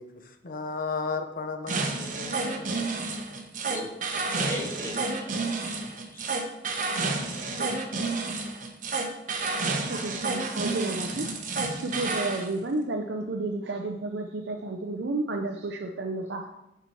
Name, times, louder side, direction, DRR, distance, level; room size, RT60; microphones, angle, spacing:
voice 1, 0.0-3.5 7.3-7.8, left 4 dB, 50° left, 6 dB, 0.9 m, -36 dB
sound 1, 1.7-12.5, right 3 dB, 45° right, 1.0 m, -30 dB
voice 2, 3.6-5.4 5.6-6.3, equal, 15° left, -1 dB, 1.5 m, -38 dB
voice 3, 9.8-11.3 11.7-16.5, right 2 dB, 85° right, 3 dB, 0.6 m, -31 dB
6.9 x 6.0 x 4.5 m, 0.89 s
head